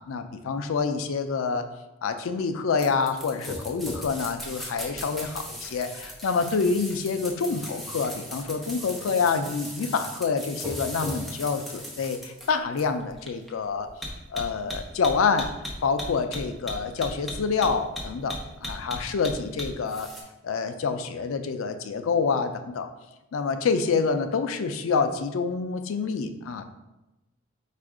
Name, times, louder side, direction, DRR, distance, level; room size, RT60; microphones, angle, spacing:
voice 1, 0.0-1.7 2.0-13.9 14.3-15.5 15.8-20.1 20.4-22.9 23.3-26.6, left 5 dB, 80° left, 8 dB, 0.4 m, -27 dB
sound 1, 2.8-20.2, equal, ahead, 0.6 m, -37 dB
4.3 x 2.5 x 4.8 m, 0.99 s
head